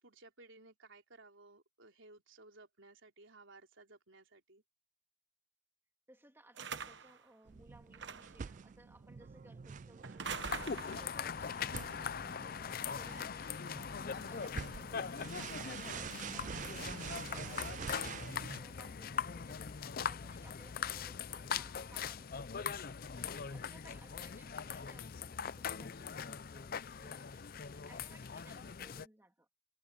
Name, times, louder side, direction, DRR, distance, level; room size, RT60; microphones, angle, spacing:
voice 1, 0.0-4.6 14.0-14.6, right 2 dB, 80° right, 3.7 m, -59 dB
voice 2, 6.1-29.5, right 1 dB, 10° right, 2.7 m, -61 dB
sound 1, 6.6-7.2 7.9-8.4 10.0-11.2, right 6 dB, 65° right, 1.1 m, -43 dB
sound 2, 7.5-18.6, right 6 dB, 40° right, 0.3 m, -47 dB
sound 3, 10.2-29.1, left 6 dB, 50° left, 0.5 m, -41 dB
head